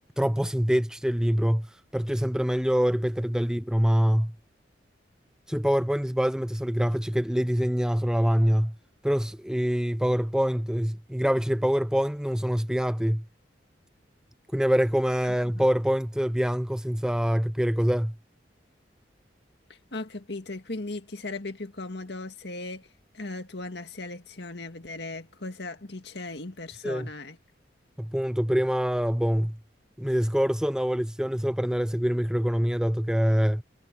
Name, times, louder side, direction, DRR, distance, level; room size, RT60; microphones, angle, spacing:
voice 1, 0.2-4.3 5.5-8.7 9.0-13.2 14.5-18.1 26.8-27.1 28.0-29.6 30.0-33.6, equal, 5° right, 0.6 m, -25 dB
voice 2, 15.3-15.6 19.7-22.9 23.1-27.4, left 2 dB, 65° left, 2.0 m, -37 dB
head